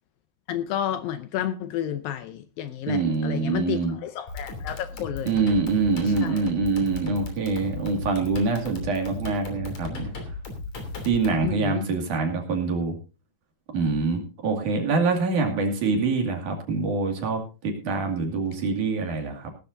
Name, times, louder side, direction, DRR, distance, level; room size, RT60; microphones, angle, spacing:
voice 1, 0.5-5.4 6.0-6.5 11.4-11.9, left 11 dB, 75° left, 10 dB, 2.2 m, -31 dB
voice 2, 2.9-4.0 5.3-10.1 11.1-12.9 13.7-19.5, right 4 dB, 55° right, 3 dB, 3.6 m, -25 dB
sound 1, 4.3-11.5, left 3 dB, 45° left, 4.0 m, -36 dB
18.0 x 13.0 x 2.7 m, 0.31 s
omnidirectional pair, 4.6 m